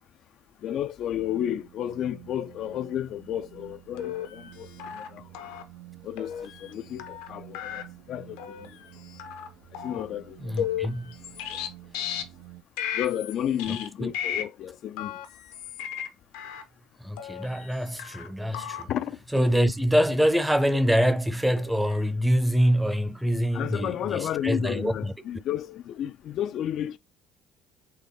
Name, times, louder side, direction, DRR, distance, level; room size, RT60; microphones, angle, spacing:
voice 1, 0.6-5.5 6.0-9.0 9.7-10.8 11.4-11.6 12.0-12.1 12.9-15.2 18.9-19.2 23.5-27.0, left 10 dB, 60° left, 0.3 m, -32 dB
sound 1, 1.1-12.6, right 16 dB, 85° right, 0.5 m, -50 dB
sound 2, 4.0-4.5 4.8-5.1 5.3-5.6 6.2-6.7 7.0-7.3 7.5-7.8 8.4-8.7 9.2-9.5 9.7-10.0 10.6-11.7 11.9-12.2 12.8-13.3 13.6-13.9 14.1-14.4 15.0-16.1 16.3-16.6 17.2-17.7 18.0-18.3 18.5-18.8 19.4-19.5 20.2-20.5 20.7-21.0 21.6-22.0, left 10 dB, 85° left, 0.7 m, -35 dB
voice 2, 10.4-11.2 13.7-14.1 17.0-18.9 19.3-25.1, equal, 5° right, 0.6 m, -25 dB
4.1 x 3.1 x 3.6 m
supercardioid pair, 80°, 0 cm